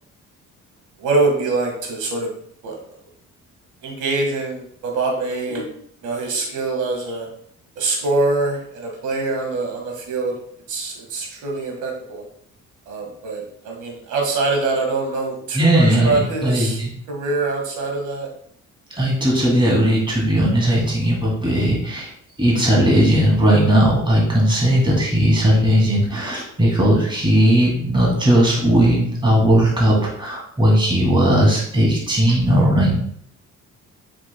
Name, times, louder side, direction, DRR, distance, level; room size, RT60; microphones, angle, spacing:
voice 1, 1.0-2.3 2.6-2.8 3.8-5.7 6.0-7.3 7.7-10.3 10.7-12.2 12.9-18.3, right 3 dB, 80° right, 1 dB, 1.7 m, -24 dB
voice 2, 15.6-16.9 19.0-22.1 22.4-33.0, equal, 15° right, -3 dB, 2.4 m, -17 dB
7.3 x 6.1 x 2.2 m, 0.65 s
cardioid pair, 90°, 30 cm